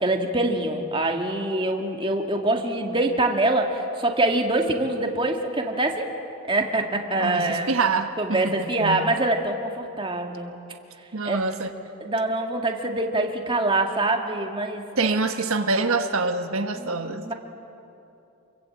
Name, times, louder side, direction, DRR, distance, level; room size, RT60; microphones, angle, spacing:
voice 1, 0.0-6.1 6.5-7.7 8.2-10.6 11.2-11.4 12.0-15.1 16.8-17.3, right 2 dB, 25° right, 3 dB, 2.1 m, -25 dB
voice 2, 7.2-9.1 11.1-11.7 15.0-17.3, right 3 dB, 75° right, 6 dB, 1.4 m, -26 dB
28.0 x 22.5 x 8.7 m, 2.7 s
head